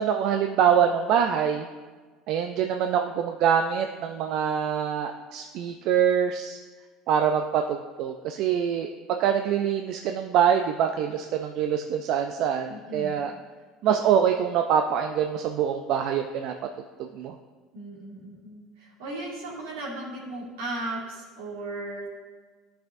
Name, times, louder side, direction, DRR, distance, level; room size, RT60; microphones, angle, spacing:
voice 1, 0.0-1.7 2.3-6.6 7.1-13.3 13.8-16.5 17.1-17.3, right 8 dB, 65° right, 5 dB, 0.4 m, -24 dB
voice 2, 12.7-13.1 17.7-22.1, right 2 dB, 85° right, -4 dB, 2.1 m, -36 dB
12.5 x 5.6 x 2.6 m, 1.4 s
supercardioid pair, 85°, 0 cm